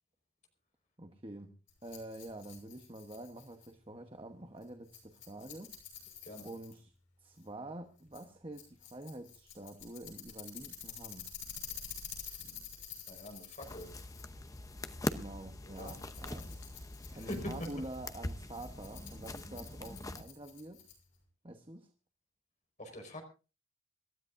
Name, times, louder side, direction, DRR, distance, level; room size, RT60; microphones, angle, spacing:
voice 1, 1.0-1.6 1.8-5.7 6.4-6.9 7.2-11.3 15.1-16.7 17.1-20.8 21.4-21.9, right 1 dB, 25° right, 1.1 m, -47 dB
Rattle, 1.7-21.2, left 8 dB, 65° left, 6.8 m, -50 dB
voice 2, 13.1-13.9 15.7-16.0 17.1-17.7 22.8-23.2, left 1 dB, 35° left, 5.0 m, -43 dB
sound 1, 13.6-20.2, left 1 dB, 15° left, 0.8 m, -42 dB
27.0 x 13.0 x 2.6 m
head